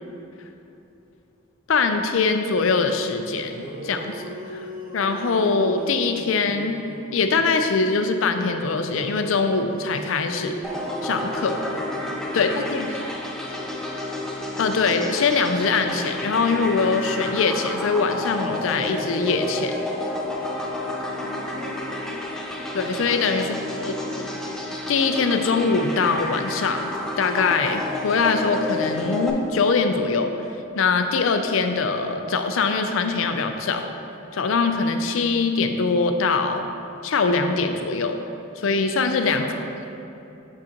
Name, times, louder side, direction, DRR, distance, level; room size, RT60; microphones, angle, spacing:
voice 1, 1.7-4.2 4.5-4.6 4.9-6.8 7.1-10.6 11.0-11.6 12.3-12.9 14.6-19.7 22.7-23.6 23.8-23.9 24.9-26.9 27.2-30.3 30.8-33.9 34.3-36.7 37.0-38.2 38.6-39.5, left 4 dB, 80° left, 7 dB, 0.5 m, -22 dB
sound 1, 3.2-3.3 3.5-7.7 8.9-12.9, right 1 dB, 45° right, 0.7 m, -38 dB
sound 2, 10.6-29.3, left 1 dB, 5° left, 0.5 m, -31 dB
voice 2, 11.6-11.9 12.3-13.8 21.2-22.5 23.3-24.6 39.3-39.8, equal, 75° right, -1 dB, 1.0 m, -39 dB
6.4 x 6.1 x 2.9 m, 2.8 s
head